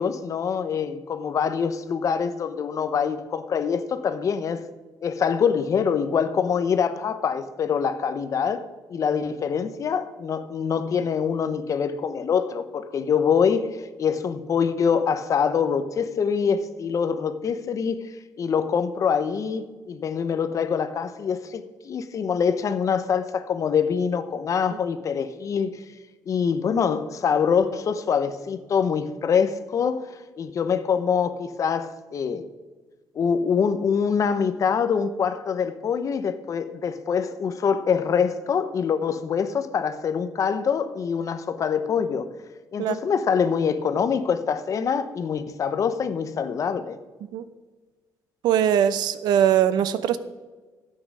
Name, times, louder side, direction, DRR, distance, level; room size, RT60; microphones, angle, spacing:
voice 1, 0.0-4.6 5.0-18.1 18.4-25.7 26.3-30.1 30.4-32.5 33.1-42.3 42.7-47.0, left 6 dB, 50° left, 0.9 m, -24 dB
voice 2, 48.4-50.2, right 9 dB, 85° right, 0.7 m, -21 dB
12.5 x 8.8 x 6.2 m
cardioid pair, 110°, 7 cm